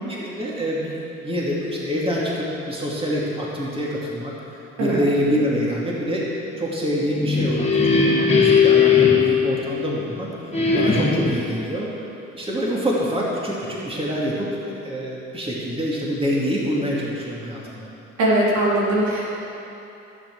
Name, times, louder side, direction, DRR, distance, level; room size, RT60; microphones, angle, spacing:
voice 1, 0.1-1.0 1.2-4.3 4.8-6.3 6.6-10.3 10.7-11.9 12.3-17.9, equal, 20° right, -5 dB, 2.6 m, -26 dB
sound 1, 7.0-10.1 10.5-11.5, left 5 dB, 20° left, 2.0 m, -18 dB
voice 2, 18.2-19.4, right 1 dB, 75° right, -6 dB, 3.6 m, -20 dB
15.5 x 7.5 x 6.2 m, 2.9 s
cardioid pair, 90°, 30 cm